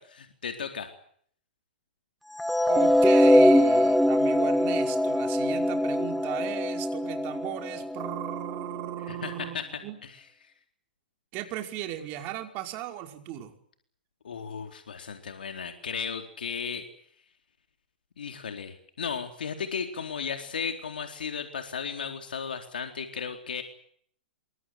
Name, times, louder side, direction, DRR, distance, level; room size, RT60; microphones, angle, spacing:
voice 1, 0.1-0.9 9.1-9.7 10.0-10.5 14.2-16.8 18.2-23.6, left 6 dB, 80° left, 6 dB, 4.1 m, -35 dB
sound 1, 2.4-8.6, left 1 dB, ahead, 1.9 m, -22 dB
voice 2, 2.7-10.0 11.3-13.5, right 12 dB, 40° right, 5 dB, 5.4 m, -36 dB
27.5 x 24.0 x 8.0 m, 0.63 s
hypercardioid pair, 120°, 5 cm